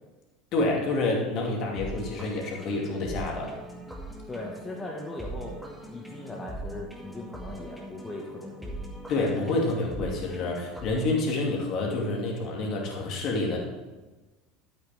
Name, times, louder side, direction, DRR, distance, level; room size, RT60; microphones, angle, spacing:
voice 1, 0.5-3.5 9.1-13.6, left 2 dB, 50° left, -1 dB, 2.7 m, -28 dB
sound 1, 1.8-11.2, right 1 dB, ahead, 2.2 m, -41 dB
voice 2, 4.3-5.6 5.9-8.8, left 1 dB, 15° left, -1 dB, 1.6 m, -39 dB
12.5 x 8.6 x 3.6 m, 1.2 s
figure-of-eight pair, 70°, 0 cm